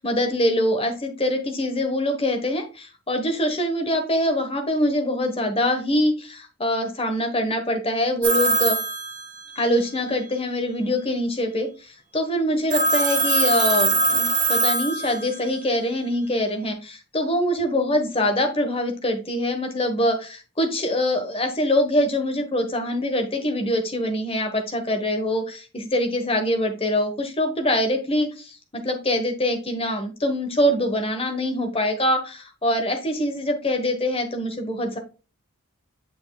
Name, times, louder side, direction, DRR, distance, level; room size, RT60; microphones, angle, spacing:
voice 1, 0.0-8.8 9.5-35.0, left 1 dB, 25° left, 5 dB, 1.2 m, -24 dB
Telephone, 8.2-9.8 12.7-15.5, right 3 dB, 35° right, 1.4 m, -22 dB
7.6 x 6.5 x 2.3 m, 0.32 s
head